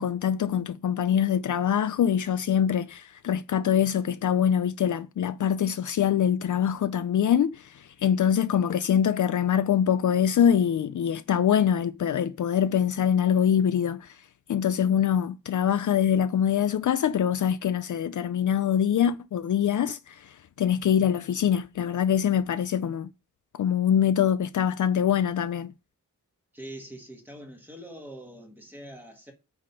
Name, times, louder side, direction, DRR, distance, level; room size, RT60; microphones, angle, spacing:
voice 1, 0.0-14.1 14.5-23.1 23.6-25.7, left 9 dB, 60° left, 0.5 m, -24 dB
voice 2, 26.5-29.3, right 1 dB, 5° right, 1.7 m, -43 dB
8.9 x 3.5 x 5.5 m
wide cardioid pair, 170°, 34 cm